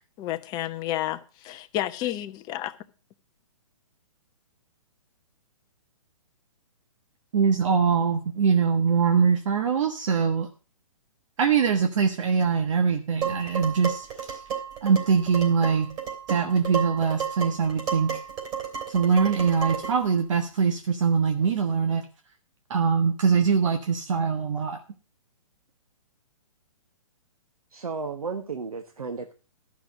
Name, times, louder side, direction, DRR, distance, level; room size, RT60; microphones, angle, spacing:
voice 1, 0.2-2.7, left 13 dB, 20° left, 0.8 m, -31 dB
voice 2, 7.3-10.5 11.4-14.4 14.8-15.9 16.3-18.1 18.9-22.0 22.7-24.8, right 6 dB, 60° right, 1.4 m, -23 dB
Dishes pots and pans, 13.2-20.1, right 7 dB, 30° right, 3.4 m, -33 dB
voice 3, 27.7-29.3, right 4 dB, 85° right, 1.3 m, -33 dB
12.5 x 6.2 x 6.2 m
hypercardioid pair, 140°, 18 cm